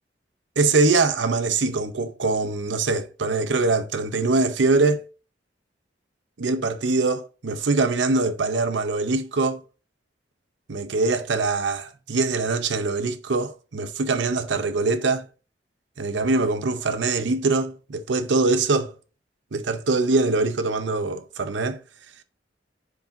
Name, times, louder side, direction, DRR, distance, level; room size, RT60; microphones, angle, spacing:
voice 1, 0.6-5.0 6.4-9.6 10.7-15.2 16.0-18.9 19.5-21.8, right 3 dB, 80° right, 0.7 m, -23 dB
8.7 x 5.0 x 2.6 m
head